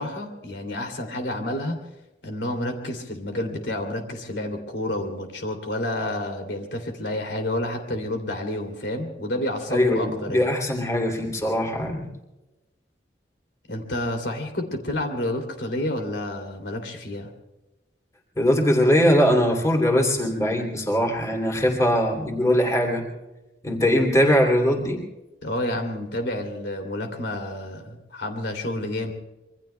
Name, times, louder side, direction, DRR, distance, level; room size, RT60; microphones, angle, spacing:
voice 1, 0.0-1.9 2.2-10.5 13.7-17.3 25.4-29.1, left 1 dB, 85° left, 4 dB, 2.9 m, -29 dB
voice 2, 9.7-12.1 18.4-23.0 23.6-25.0, equal, 20° left, 1 dB, 2.9 m, -21 dB
26.5 x 24.0 x 2.3 m, 1.0 s
head